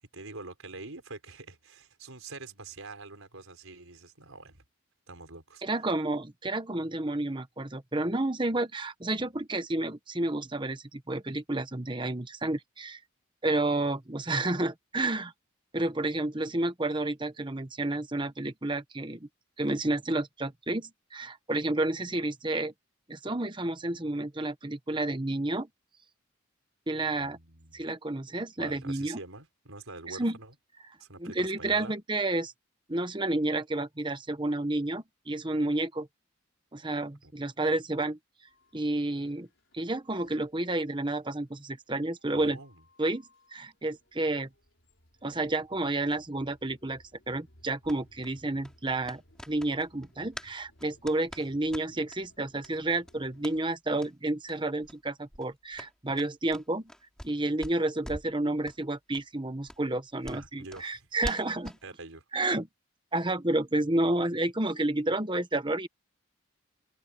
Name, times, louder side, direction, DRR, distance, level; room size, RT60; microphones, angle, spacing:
voice 1, 0.1-4.6 5.1-5.6 27.1-27.8 28.6-30.5 31.0-32.0 37.2-37.3 42.3-42.8 60.3-61.1 61.8-62.2, right 3 dB, 85° right, 4.6 m, -45 dB
voice 2, 5.6-13.0 13.4-15.3 15.7-19.3 19.6-22.7 23.1-25.7 26.9-27.4 27.7-29.2 30.1-30.4 31.2-32.5 32.9-36.1 36.7-38.2 38.7-39.5 39.7-42.6 43.0-44.5 45.2-49.2 49.5-56.9 57.2-61.8 62.3-62.7 63.1-65.9, right 2 dB, 25° right, 1.2 m, -30 dB
sound 1, 38.5-53.7, left 1 dB, 60° left, 5.7 m, -63 dB
sound 2, 47.8-50.5 50.8-52.2 52.6-52.7 53.0-53.6 54.0-54.1 54.4-54.6 54.8-55.0 55.3-57.3 57.6-58.4 58.6-58.8 59.1-59.2 59.7-61.8, equal, 5° left, 3.5 m, -44 dB
head